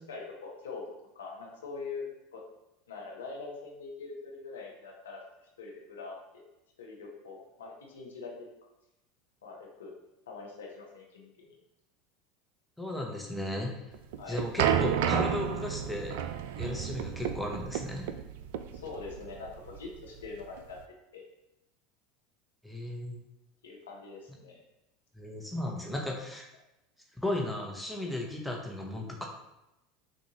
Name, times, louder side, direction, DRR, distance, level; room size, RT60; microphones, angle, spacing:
voice 1, 0.1-0.8 1.1-2.1 2.3-2.4 2.9-5.2 5.6-6.4 6.8-8.3 9.4-9.9 10.3-11.6 14.2-14.4 18.7-20.8 21.1-21.2 23.6-24.6, left 4 dB, 85° left, -1 dB, 1.0 m, -43 dB
voice 2, 12.8-13.7 14.3-16.1 16.6-18.1 22.6-23.2 25.1-26.5 27.2-29.3, left 1 dB, ahead, -1 dB, 1.0 m, -35 dB
sound 1, 13.9-20.8, right 9 dB, 70° right, 0.3 m, -32 dB
6.3 x 2.6 x 3.0 m, 0.91 s
hypercardioid pair, 85°, 0 cm